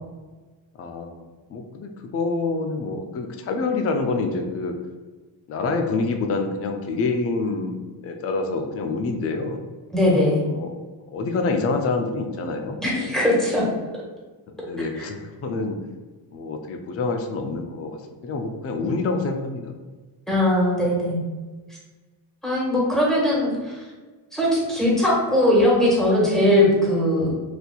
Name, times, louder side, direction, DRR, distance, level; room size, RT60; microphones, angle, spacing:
voice 1, 0.8-4.8 5.5-9.6 10.4-10.7 11.1-13.2 14.6-15.8 16.3-19.7, left 3 dB, 30° left, 5 dB, 0.4 m, -27 dB
voice 2, 9.9-10.4 12.8-13.7 14.9-15.1 20.3-21.2 22.4-23.8 24.3-27.3, left 1 dB, ahead, -6 dB, 1.4 m, -20 dB
4.1 x 2.6 x 2.3 m, 1.3 s
cardioid pair, 80°, 49 cm